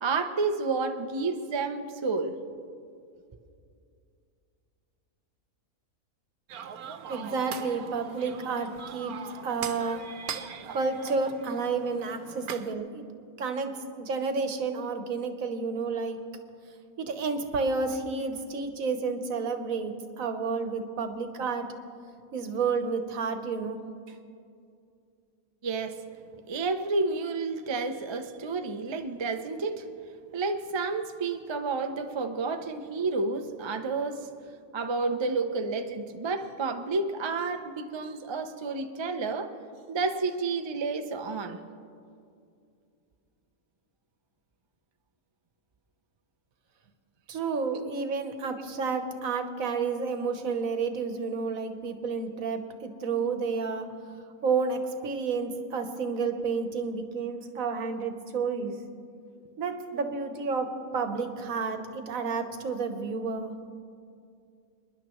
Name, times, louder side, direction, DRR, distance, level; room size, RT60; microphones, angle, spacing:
voice 1, 0.0-2.4 25.6-26.0 26.5-29.9 30.3-34.3 34.7-39.5 39.9-41.6, right 3 dB, 40° right, 6 dB, 0.3 m, -30 dB
sound 1, 6.5-12.7, right 7 dB, 90° right, 1.2 m, -41 dB
voice 2, 7.1-9.1 9.4-10.1 10.7-13.0 13.4-16.2 17.0-21.7 22.3-23.8 24.1-24.2 47.3-53.9 54.4-58.8 59.6-63.5, right 4 dB, 70° right, 7 dB, 1.4 m, -30 dB
28.5 x 10.5 x 3.1 m, 2.4 s
omnidirectional pair, 1.5 m